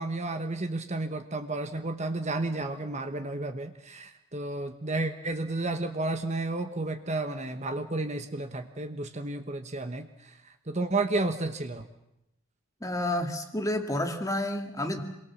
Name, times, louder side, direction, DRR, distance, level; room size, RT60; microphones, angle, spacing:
voice 1, 0.0-11.9, right 2 dB, 30° right, 7 dB, 1.2 m, -32 dB
voice 2, 12.8-15.0, left 1 dB, 15° left, 5 dB, 2.1 m, -30 dB
28.0 x 22.0 x 7.3 m, 0.85 s
head